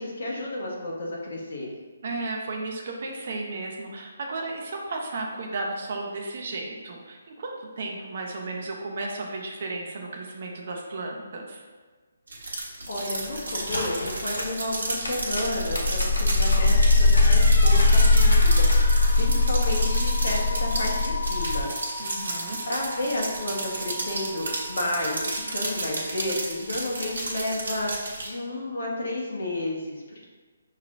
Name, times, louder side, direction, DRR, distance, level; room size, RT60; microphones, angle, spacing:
voice 1, 0.0-1.7 12.9-22.4 22.6-30.3, left 1 dB, 70° left, -2 dB, 1.2 m, -32 dB
voice 2, 2.0-11.6 22.0-22.6, right 2 dB, 50° right, 0 dB, 0.7 m, -34 dB
sound 1, 12.3-28.3, right 2 dB, 80° right, 1.2 m, -33 dB
sound 2, 13.1-19.6, left 1 dB, 90° left, 0.8 m, -35 dB
sound 3, 15.0-25.0, left 3 dB, 50° left, 0.8 m, -22 dB
5.6 x 3.1 x 2.5 m, 1.4 s
hypercardioid pair, 160°, 0 cm